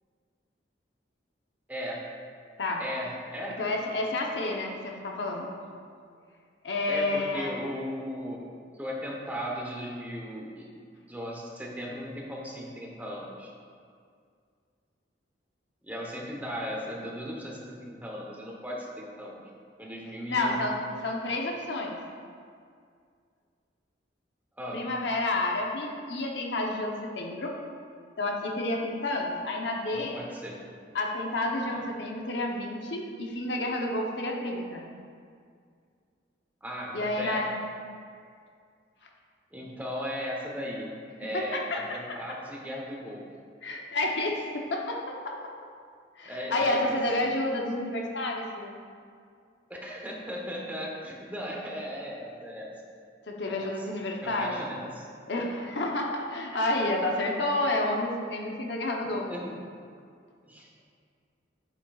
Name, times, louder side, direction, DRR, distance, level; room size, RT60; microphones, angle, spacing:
voice 1, 1.7-2.0 2.8-3.6 6.9-10.7 11.1-13.5 15.8-19.5 19.8-20.7 24.6-24.8 29.9-30.6 31.7-31.8 36.6-37.5 39.5-40.9 41.2-43.2 46.2-46.9 49.7-52.7 53.5-53.7 54.2-55.1 59.3-59.6 60.5-60.7, equal, 10° right, -2 dB, 0.9 m, -37 dB
voice 2, 3.6-5.5 6.6-7.5 20.3-22.0 24.7-27.5 28.2-30.2 30.9-34.8 36.9-37.5 41.3-41.8 43.6-45.4 46.2-48.8 53.3-54.6 55.3-59.3, left 2 dB, 70° left, 0 dB, 0.9 m, -30 dB
8.8 x 7.9 x 2.4 m, 2.2 s
head